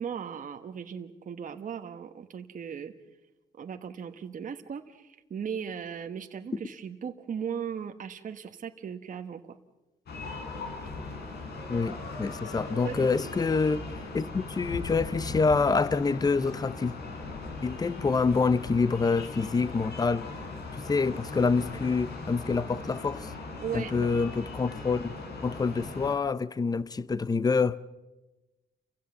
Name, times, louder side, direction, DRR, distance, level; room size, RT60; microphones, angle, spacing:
voice 1, 0.0-2.9 3.6-9.6 12.8-13.1 23.6-24.1, right 7 dB, 45° right, 1.2 m, -37 dB
sound 1, 10.1-26.1, left 3 dB, 65° left, 4.2 m, -39 dB
voice 2, 11.7-13.9 14.1-16.9 17.6-20.3 20.9-23.3 23.7-25.1 25.4-27.8, left 4 dB, 20° left, 0.7 m, -26 dB
29.0 x 16.0 x 7.2 m
cardioid pair, 120°, 18 cm